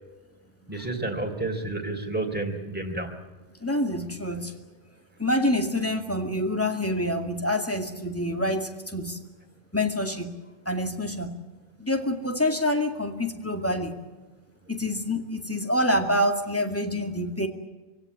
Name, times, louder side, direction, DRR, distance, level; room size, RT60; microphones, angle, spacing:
voice 1, 0.7-3.2, right 2 dB, 10° right, 3 dB, 3.4 m, -30 dB
voice 2, 3.6-4.5 5.2-9.2 9.7-10.3 10.7-11.4 11.8-14.0 14.7-17.5, left 1 dB, 10° left, 4 dB, 2.2 m, -26 dB
24.5 x 17.0 x 9.4 m, 1.2 s
omnidirectional pair, 1.1 m